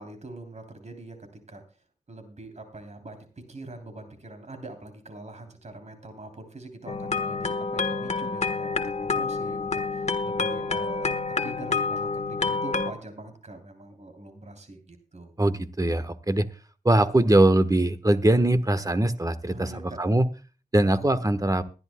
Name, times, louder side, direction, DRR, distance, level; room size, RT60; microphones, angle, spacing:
voice 1, 0.0-1.6 2.1-15.3 19.5-20.0, right 2 dB, 50° right, 6 dB, 3.2 m, -43 dB
sound 1, 6.9-12.9, left 4 dB, 50° left, 1.4 m, -28 dB
voice 2, 15.4-16.5 16.8-19.7 20.0-20.2 20.7-21.6, right 1 dB, 25° right, 11 dB, 1.3 m, -21 dB
22.5 x 11.0 x 2.3 m, 0.33 s
wide cardioid pair, 60°, 15 cm